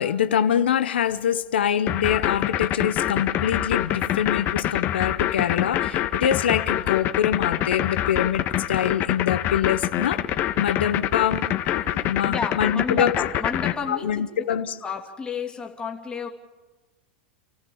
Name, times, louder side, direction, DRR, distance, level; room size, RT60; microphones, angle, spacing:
voice 1, 0.0-10.2 10.6-13.2 13.9-14.8, left 9 dB, 85° left, 0.8 m, -24 dB
sound 1, 1.9-13.7, left 12 dB, 40° left, 1.4 m, -25 dB
voice 2, 12.2-16.3, left 5 dB, 15° left, 2.5 m, -31 dB
29.0 x 14.5 x 7.1 m
hypercardioid pair, 115°, 6 cm